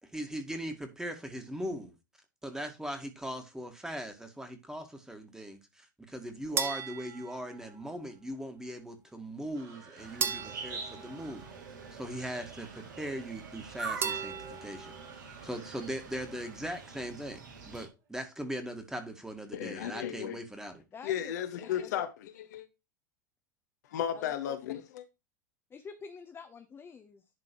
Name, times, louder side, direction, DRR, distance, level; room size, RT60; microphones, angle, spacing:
voice 1, 0.0-1.9 2.4-11.5 11.9-14.9 15.4-17.4 17.7-20.8, equal, 5° right, 1.9 m, -39 dB
sound 1, 6.6-8.1 10.2-12.0 14.0-15.1, right 6 dB, 25° right, 1.0 m, -37 dB
sound 2, 9.5-18.0, right 5 dB, 50° right, 4.2 m, -53 dB
sound 3, 10.0-17.9, right 4 dB, 70° right, 2.1 m, -44 dB
voice 2, 19.5-20.4 21.0-22.7 23.9-25.0, left 10 dB, 60° left, 1.1 m, -34 dB
voice 3, 20.9-21.3 21.6-21.9 24.1-24.5 25.7-27.2, left 5 dB, 25° left, 0.9 m, -47 dB
11.0 x 3.9 x 4.6 m
figure-of-eight pair, 85°, 10 cm